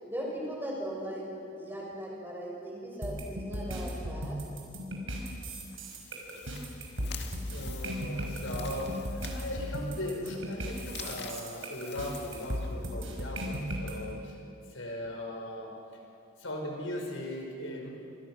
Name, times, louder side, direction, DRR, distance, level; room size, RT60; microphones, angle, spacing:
voice 1, 0.0-4.4, equal, 10° right, -3 dB, 6.6 m, -38 dB
sound 1, 3.0-13.9, equal, 85° right, 5.6 m, -36 dB
sound 2, 5.4-13.1, left 7 dB, 55° left, 2.2 m, -48 dB
voice 2, 7.5-14.4 14.7-15.7 16.4-17.9, left 1 dB, 85° left, 1 dB, 5.7 m, -38 dB
28.0 x 27.0 x 6.3 m, 2.7 s
head